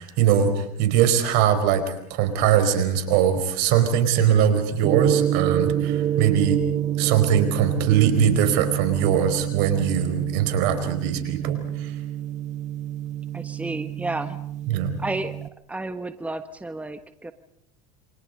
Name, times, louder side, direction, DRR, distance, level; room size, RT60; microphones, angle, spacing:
voice 1, 0.0-1.8 2.1-6.6 7.0-11.9 14.7-14.9, right 8 dB, 70° right, 9 dB, 4.6 m, -21 dB
Gong, 4.8-15.5, right 11 dB, 40° right, 1.0 m, -27 dB
voice 2, 13.3-14.4 15.0-15.4 15.7-17.3, right 2 dB, 5° right, 10 dB, 1.4 m, -31 dB
28.0 x 25.5 x 5.4 m, 0.70 s
supercardioid pair, 100°, 18 cm